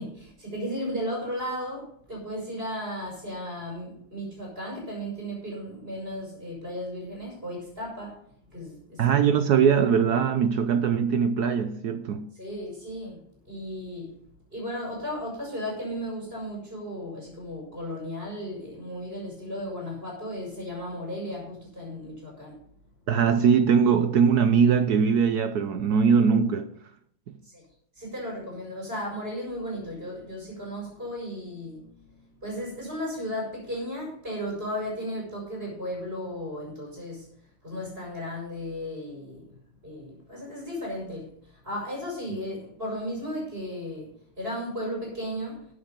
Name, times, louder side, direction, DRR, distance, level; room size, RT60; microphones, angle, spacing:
voice 1, 0.0-9.4 12.3-14.2 14.5-22.6 27.4-27.6 28.0-37.3 37.6-39.5 39.8-45.7, equal, 25° right, 5.4 m, -35 dB
voice 2, 9.0-12.3 23.1-26.7, right 6 dB, 65° right, 1.0 m, -21 dB
13.0 x 8.1 x 5.2 m
omnidirectional pair, 2.3 m